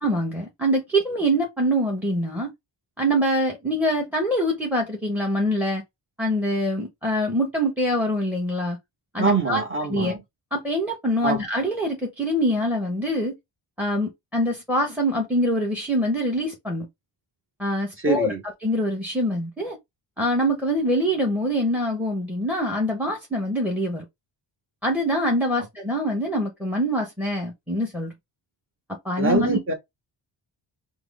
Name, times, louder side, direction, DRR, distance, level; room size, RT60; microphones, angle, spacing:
voice 1, 0.0-2.5 3.0-5.8 6.2-8.8 9.1-9.6 9.9-10.1 10.5-13.3 13.8-16.9 17.6-18.3 18.6-19.8 20.2-24.0 24.8-28.1 29.0-29.6, equal, 5° right, 1.0 m, -24 dB
voice 2, 9.2-10.2 11.2-11.4 18.0-18.4 29.2-29.7, right 3 dB, 25° right, 1.1 m, -24 dB
5.9 x 2.0 x 3.5 m
wide cardioid pair, 135°, 49 cm